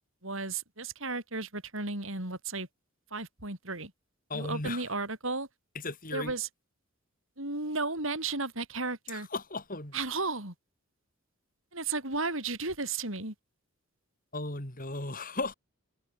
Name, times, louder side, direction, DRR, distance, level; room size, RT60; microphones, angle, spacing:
voice 1, 0.2-2.7 3.1-3.9 4.3-5.5 6.1-6.5 7.4-9.3 9.9-10.5 11.7-13.3, right 3 dB, 65° right, 7.6 m, -34 dB
voice 2, 4.3-4.8 5.8-6.3 9.1-9.9 14.3-15.5, left 2 dB, 40° left, 6.4 m, -36 dB
head